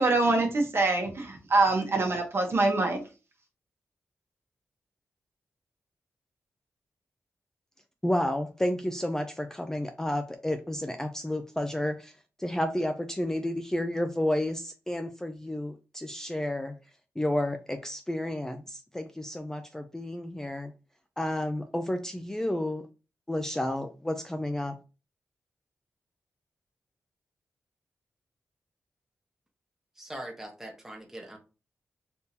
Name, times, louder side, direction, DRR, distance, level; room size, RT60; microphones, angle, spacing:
voice 1, 0.0-3.0, right 2 dB, 50° right, 2 dB, 1.0 m, -24 dB
voice 2, 8.0-12.1 12.4-16.8 17.2-20.7 21.2-22.9 23.3-24.7, left 1 dB, 10° left, 6 dB, 0.3 m, -31 dB
voice 3, 30.0-31.4, right 1 dB, 5° right, 1 dB, 1.0 m, -41 dB
3.6 x 2.7 x 2.7 m, 0.31 s
cardioid pair, 80°, 5 cm